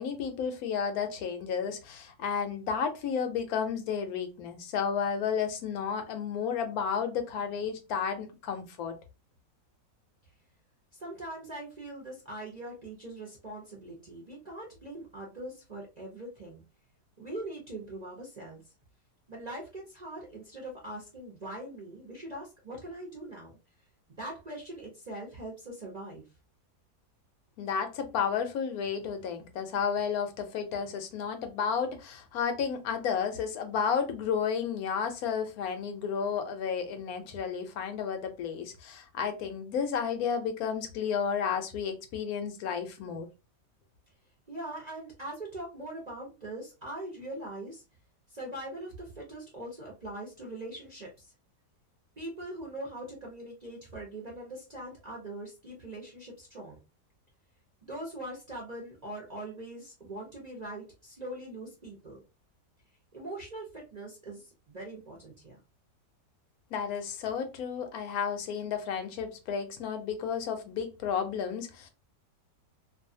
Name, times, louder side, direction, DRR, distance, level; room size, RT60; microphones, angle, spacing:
voice 1, 0.0-8.9 27.6-43.3 66.7-71.9, left 7 dB, 70° left, 1.0 m, -32 dB
voice 2, 10.9-16.6 17.2-18.7 19.3-23.5 24.1-26.2 44.5-47.8 48.3-51.3 52.2-56.8 57.8-62.2 63.1-65.6, right 1 dB, 45° right, 0.5 m, -42 dB
2.6 x 2.3 x 2.6 m
omnidirectional pair, 1.8 m